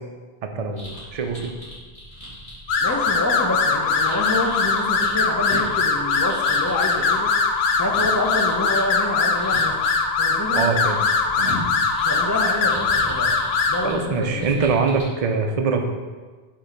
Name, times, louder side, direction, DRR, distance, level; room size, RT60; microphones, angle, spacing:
voice 1, 0.4-1.5 10.6-11.0 11.4-11.6 13.8-15.9, right 4 dB, 40° right, 4 dB, 0.6 m, -23 dB
sound 1, 0.7-15.0, equal, 50° left, 2.5 m, -38 dB
sound 2, 2.7-13.9, left 4 dB, 80° left, 1.0 m, -21 dB
voice 2, 2.8-7.3 7.8-9.8 10.2-10.7 12.0-13.3 13.7-14.7, left 1 dB, 20° left, 1 dB, 0.7 m, -27 dB
8.6 x 3.0 x 5.1 m, 1.4 s
omnidirectional pair, 1.0 m